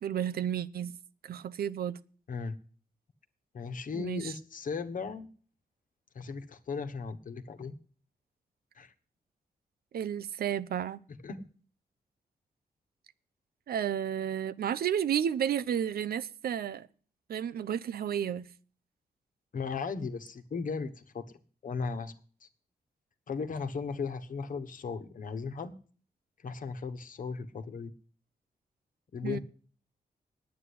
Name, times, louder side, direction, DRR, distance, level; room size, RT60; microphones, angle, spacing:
voice 1, 0.0-0.9 1.2-2.0 3.9-4.3 9.9-11.0 13.7-16.9 17.3-18.5 29.2-29.4, right 9 dB, 80° right, 16 dB, 0.7 m, -32 dB
voice 2, 3.5-5.3 6.1-7.8 8.7-8.9 11.2-11.4 19.5-21.2 21.6-22.1 22.4-22.5 23.3-25.8 26.4-27.9 29.1-29.4, left 5 dB, 60° left, 9 dB, 1.3 m, -36 dB
9.7 x 8.9 x 8.5 m, 0.43 s
cardioid pair, 100°, 16 cm